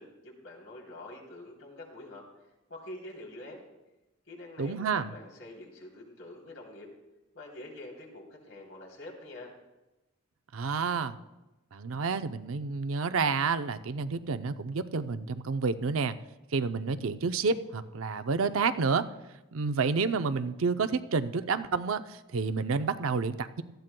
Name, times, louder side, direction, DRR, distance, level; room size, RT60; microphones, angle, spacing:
voice 1, 0.0-2.2 2.7-3.6 4.3-6.9 7.3-9.5, left 1 dB, 85° left, -1 dB, 3.3 m, -46 dB
voice 2, 4.6-5.1 10.5-11.2 11.7-16.2 16.5-19.1 19.5-22.0 22.3-23.6, right 4 dB, 90° right, 10 dB, 0.6 m, -29 dB
18.5 x 14.0 x 2.2 m, 1.0 s
head